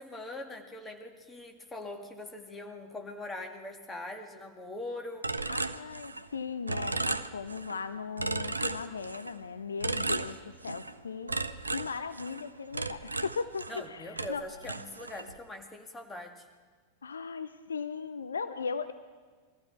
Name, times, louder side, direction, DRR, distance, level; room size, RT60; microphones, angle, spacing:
voice 1, 0.0-5.3 13.7-16.5, left 2 dB, 15° left, 3 dB, 2.0 m, -42 dB
sound 1, 5.2-6.4 6.7-7.8 8.2-9.4 9.8-10.9 11.3-13.9 14.2-15.3, right 3 dB, 80° right, 0.5 m, -34 dB
voice 2, 5.5-11.3 11.7-14.4 17.0-18.9, left 5 dB, 70° left, 12 dB, 0.6 m, -37 dB
22.5 x 14.5 x 4.4 m, 1.5 s
figure-of-eight pair, 90°, 0 cm